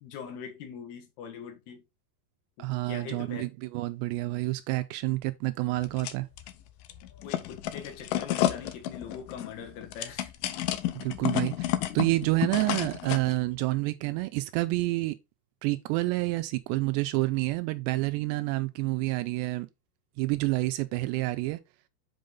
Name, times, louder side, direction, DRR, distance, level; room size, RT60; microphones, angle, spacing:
voice 1, 0.0-1.8 2.6-3.5 7.2-10.3 11.2-12.0, left 7 dB, 70° left, 3.4 m, -42 dB
voice 2, 2.6-6.3 10.9-15.2 15.6-19.7 20.2-21.6, right 20 dB, 85° right, 2.7 m, -28 dB
sound 1, 5.8-6.5 6.9-13.3, left 13 dB, 85° left, 1.9 m, -31 dB
7.6 x 5.2 x 3.8 m
omnidirectional pair, 5.0 m